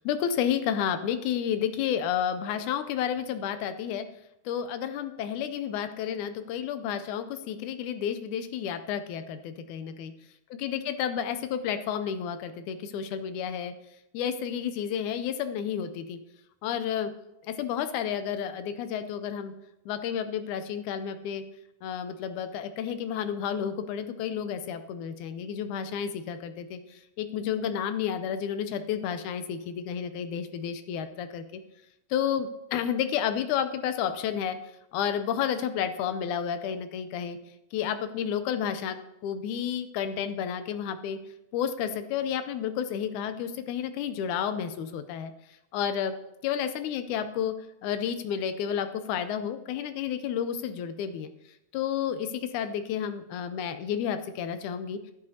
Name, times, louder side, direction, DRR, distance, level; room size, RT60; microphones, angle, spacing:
voice 1, 0.0-4.1 4.5-10.1 10.5-13.7 14.1-16.2 16.6-17.1 17.4-19.5 19.9-21.4 21.8-31.4 32.1-34.6 34.9-37.4 37.7-41.2 41.5-45.3 45.7-46.1 46.4-47.5 47.8-51.3 51.7-55.1, left 8 dB, 90° left, 10 dB, 2.1 m, -31 dB
11.5 x 11.0 x 2.8 m, 0.85 s
omnidirectional pair, 3.5 m